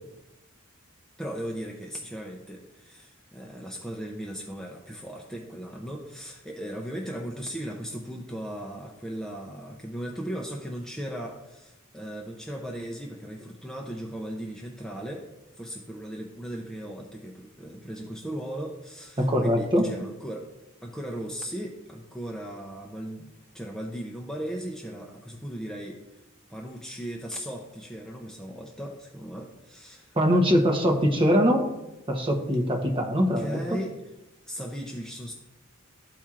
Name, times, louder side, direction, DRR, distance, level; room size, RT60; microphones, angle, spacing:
voice 1, 1.2-20.5 20.8-23.3 23.5-26.0 26.5-30.1 33.4-34.0 34.5-35.3, equal, 5° left, -2 dB, 0.5 m, -37 dB
voice 2, 19.2-19.9 30.1-31.6 32.1-33.8, equal, 25° right, 2 dB, 0.9 m, -22 dB
13.0 x 4.3 x 2.4 m, 1.0 s
head